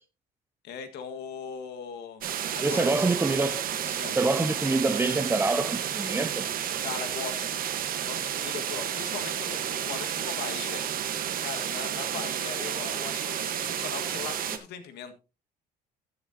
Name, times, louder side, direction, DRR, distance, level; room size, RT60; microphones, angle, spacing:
voice 1, 0.6-2.3 2.5-3.0 4.0-4.2 6.8-7.6 8.0-10.9 11.4-15.1, left 6 dB, 80° left, 1.8 m, -39 dB
sound 1, 2.2-14.6, right 9 dB, 60° right, 1.3 m, -31 dB
voice 2, 2.6-6.5, right 3 dB, 15° right, 0.6 m, -26 dB
14.5 x 7.8 x 2.8 m
cardioid pair, 110°, 17 cm